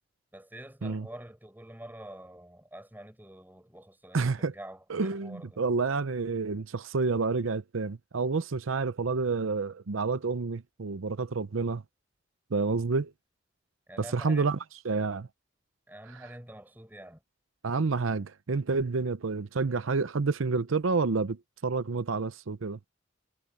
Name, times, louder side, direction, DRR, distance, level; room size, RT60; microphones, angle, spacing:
voice 1, 0.3-5.6 13.9-14.6 15.9-17.2, right 1 dB, 10° right, 4.8 m, -47 dB
voice 2, 4.1-4.5 4.9-11.8 12.5-13.1 14.1-14.6 14.8-15.3 17.6-22.8, right 4 dB, 85° right, 0.7 m, -29 dB
head